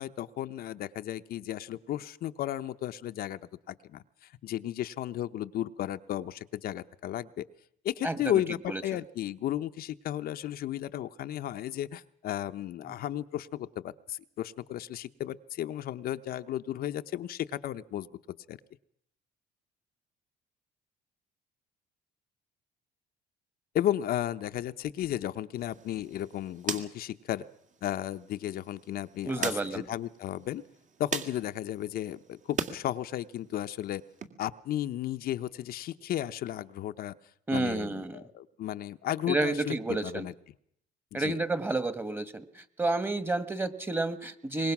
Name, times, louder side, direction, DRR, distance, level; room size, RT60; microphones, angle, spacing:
voice 1, 0.0-3.4 3.7-7.5 7.8-18.1 18.5-18.6 23.7-27.4 27.8-30.6 31.0-34.0 34.4-37.1 37.5-40.3 41.1-41.3, left 12 dB, 65° left, 9 dB, 0.8 m, -34 dB
voice 2, 8.0-8.4 8.7-8.8 29.2-29.8 37.5-38.2 39.3-40.3 41.1-44.7, right 2 dB, 10° right, 14 dB, 1.6 m, -30 dB
sound 1, 25.6-32.8 33.1-34.3, right 6 dB, 45° right, 2.3 m, -41 dB
24.0 x 21.0 x 6.0 m, 0.70 s
cardioid pair, 110°, 17 cm